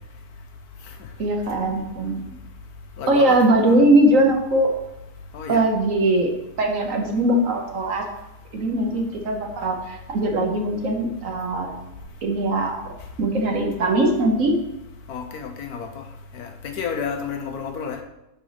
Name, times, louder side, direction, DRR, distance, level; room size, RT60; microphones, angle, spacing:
voice 1, 1.2-2.2 3.1-4.7 5.5-6.3 6.6-8.0 8.5-11.7 12.2-12.9 13.2-14.6, right 1 dB, 55° right, 2 dB, 1.2 m, -20 dB
voice 2, 3.0-3.4 3.7-3.8 5.3-5.6 15.1-16.0 16.3-18.0, left 6 dB, 65° left, 5 dB, 1.2 m, -30 dB
10.0 x 4.4 x 4.0 m, 0.90 s
omnidirectional pair, 1.8 m